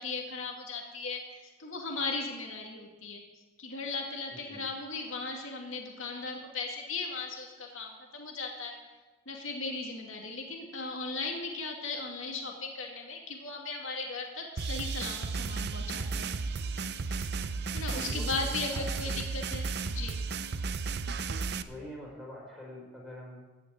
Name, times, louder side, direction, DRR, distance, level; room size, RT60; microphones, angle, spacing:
voice 1, 0.0-3.2 3.6-8.7 9.3-16.3 17.1-17.3 17.7-20.2, left 3 dB, 75° left, 1 dB, 2.3 m, -37 dB
voice 2, 4.3-4.6 17.7-19.2 21.7-23.4, equal, ahead, -4 dB, 4.4 m, -45 dB
sound 1, 14.6-21.6, right 4 dB, 55° right, 0.6 m, -34 dB
15.5 x 5.9 x 9.3 m, 1.2 s
head